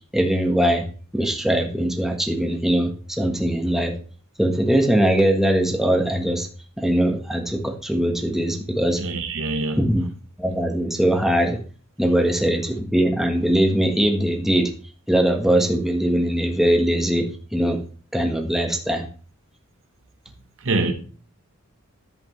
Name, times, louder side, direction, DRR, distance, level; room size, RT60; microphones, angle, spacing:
voice 1, 0.1-0.8 1.1-3.9 4.4-6.5 6.8-9.0 9.8-10.0 10.4-11.6 12.0-14.7 15.1-17.3 17.5-17.8 18.1-19.1, right 1 dB, ahead, 1.4 m, -21 dB
voice 2, 9.0-9.8 20.6-20.9, right 3 dB, 60° right, 1.1 m, -24 dB
11.0 x 7.9 x 3.1 m
head